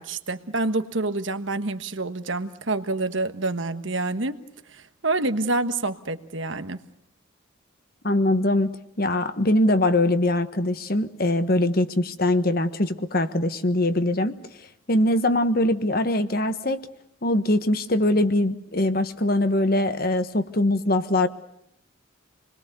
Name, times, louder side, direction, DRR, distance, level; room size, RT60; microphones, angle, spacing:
voice 1, 0.0-4.4 4.7-6.8, right 2 dB, 65° right, 9 dB, 1.4 m, -27 dB
voice 2, 8.0-14.4 14.9-16.8 17.2-21.3, left 1 dB, 45° left, 10 dB, 1.3 m, -22 dB
27.5 x 21.5 x 6.8 m, 0.77 s
head